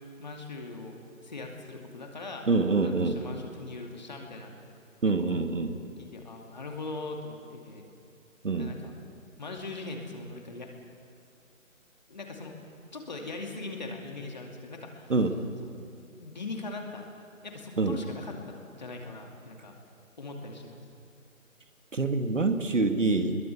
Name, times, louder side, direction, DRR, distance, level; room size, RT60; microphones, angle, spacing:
voice 1, 0.2-0.9 1.2-2.5 2.8-4.5 5.2-5.5 6.0-7.9 8.6-8.9 9.4-10.7 12.1-12.6 12.9-15.1 15.9-17.0 17.4-19.7 20.2-20.8, left 3 dB, 30° left, 2 dB, 2.5 m, -40 dB
voice 2, 2.5-3.2 5.0-5.7 8.4-8.7 15.1-15.4 17.8-18.0 21.9-23.4, right 3 dB, 65° right, 6 dB, 2.0 m, -26 dB
25.5 x 22.0 x 7.0 m, 2.4 s
figure-of-eight pair, 175°, 41 cm